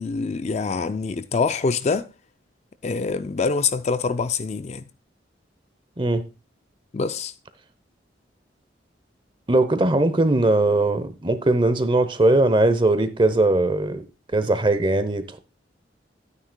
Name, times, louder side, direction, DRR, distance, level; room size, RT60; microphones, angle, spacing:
voice 1, 0.0-2.1 2.8-4.8 6.9-7.3, left 4 dB, 35° left, 0.4 m, -25 dB
voice 2, 6.0-6.3 9.5-14.1 14.3-15.4, right 2 dB, 25° right, 0.8 m, -20 dB
11.5 x 9.6 x 2.2 m
head